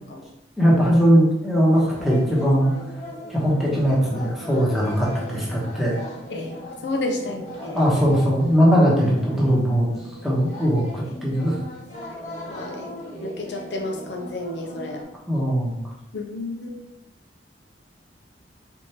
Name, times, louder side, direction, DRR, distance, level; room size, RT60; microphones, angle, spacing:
voice 1, 0.6-2.7 3.3-6.0 7.6-9.9 10.2-11.6 15.3-15.8, equal, ahead, -5 dB, 1.1 m, -20 dB
sound 1, 1.7-15.0, left 1 dB, 40° left, 1.0 m, -38 dB
voice 2, 6.3-7.8 12.5-15.0 16.1-16.9, left 2 dB, 70° left, 2 dB, 0.6 m, -31 dB
4.3 x 3.4 x 2.9 m, 0.81 s
head